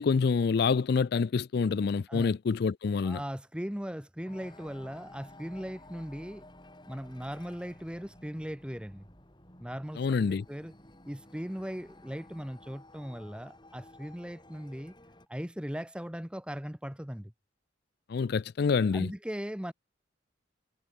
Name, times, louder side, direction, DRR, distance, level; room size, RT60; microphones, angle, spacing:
voice 1, 0.0-3.2 10.0-10.4 18.1-19.1, left 5 dB, 55° left, 0.4 m, -27 dB
voice 2, 3.0-6.4 6.9-9.1 9.6-10.7 11.0-14.9 15.3-17.3 18.9-19.7, equal, 5° right, 1.0 m, -39 dB
sound 1, 4.3-15.3, left 1 dB, 25° left, 8.0 m, -54 dB
head